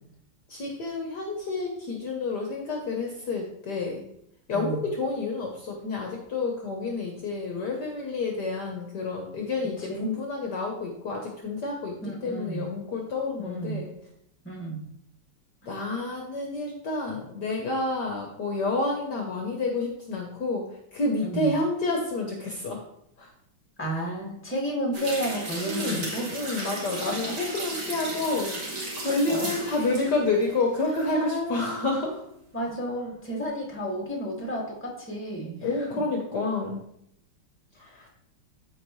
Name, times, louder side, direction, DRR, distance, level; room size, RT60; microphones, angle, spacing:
voice 1, 0.5-4.0 4.5-13.9 15.7-22.8 23.2-23.3 25.6-32.2 35.6-36.8 37.8-38.0, left 3 dB, 55° left, 1 dB, 1.5 m, -29 dB
voice 2, 9.8-10.1 12.0-12.7 13.4-13.8 14.4-14.8 21.2-21.6 23.8-26.7 27.0-27.4 29.0-29.5 31.1-31.7 32.5-36.0 37.8-38.1, right 1 dB, 5° left, -3 dB, 2.0 m, -32 dB
sound 1, 24.9-31.2 31.5-31.6, right 2 dB, 50° right, 2.4 m, -35 dB
14.0 x 4.7 x 3.2 m, 0.76 s
omnidirectional pair, 2.4 m